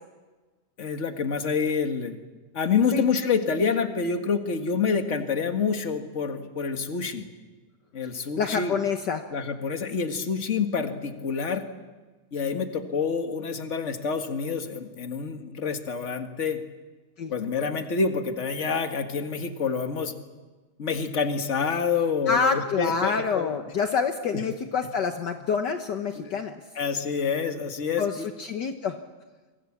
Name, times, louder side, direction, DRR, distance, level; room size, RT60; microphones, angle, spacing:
voice 1, 0.8-2.2 2.5-7.3 7.9-8.8 9.3-11.6 12.3-16.6 17.3-20.1 20.8-23.5 24.3-24.4 26.1-26.4 26.7-28.3, left 5 dB, 30° left, 6 dB, 1.4 m, -27 dB
voice 2, 8.4-9.2 17.2-17.3 22.3-26.6 28.0-29.0, left 5 dB, 65° left, 6 dB, 1.0 m, -27 dB
27.0 x 24.0 x 7.4 m, 1.3 s
omnidirectional pair, 3.5 m